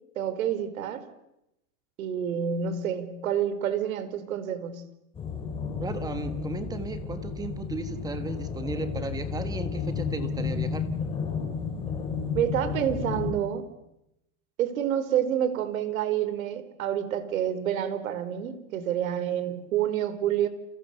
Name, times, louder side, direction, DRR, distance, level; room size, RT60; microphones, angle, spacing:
voice 1, 0.1-1.0 2.0-4.9 12.3-13.6 14.6-20.5, right 9 dB, 85° right, 11 dB, 4.7 m, -28 dB
sound 1, 5.1-13.3, left 6 dB, 15° left, 5.1 m, -32 dB
voice 2, 5.8-10.9, right 3 dB, 10° right, 9 dB, 1.5 m, -35 dB
30.0 x 29.0 x 7.0 m, 0.87 s
supercardioid pair, 175°, 40 cm